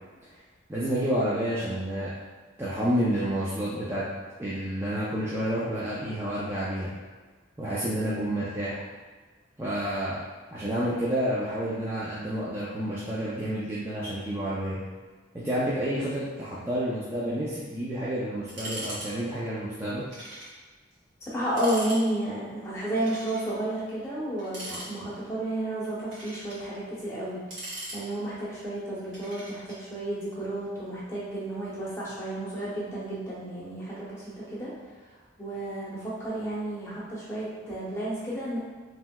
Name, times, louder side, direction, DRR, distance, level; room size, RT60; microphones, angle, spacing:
voice 1, 0.7-2.1 2.6-4.0 4.4-6.9 7.6-8.8 9.6-10.2 10.5-14.8 15.3-20.0, equal, 10° right, -9 dB, 0.4 m, -29 dB
sound 1, 18.5-19.1 19.4-19.5 20.1-20.5 20.9-21.0 21.4-22.0 22.9-23.5 24.4-25.3 25.8-26.6 27.3-28.4 29.1-29.8, right 1 dB, 85° right, 1.3 m, -40 dB
voice 2, 21.3-27.4 27.9-34.7 35.4-38.6, right 1 dB, 15° left, -9 dB, 0.8 m, -32 dB
3.2 x 2.7 x 2.2 m, 1.4 s
head